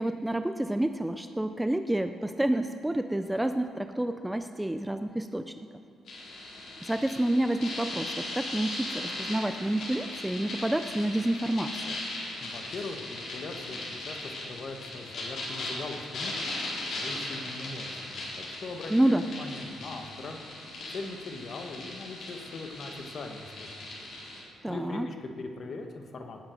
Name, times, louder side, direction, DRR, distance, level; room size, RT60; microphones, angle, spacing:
voice 1, 0.0-5.5 6.8-12.0 18.9-19.2 24.6-25.1, right 1 dB, 5° right, 8 dB, 0.4 m, -29 dB
sound 1, 6.1-24.4, left 2 dB, 60° left, 4.2 m, -38 dB
voice 2, 12.4-14.2 14.4-16.3 16.9-20.4 20.9-23.9 24.7-26.4, left 3 dB, 45° left, 4 dB, 1.3 m, -41 dB
18.5 x 7.5 x 6.4 m, 2.5 s
cardioid pair, 135°, 0 cm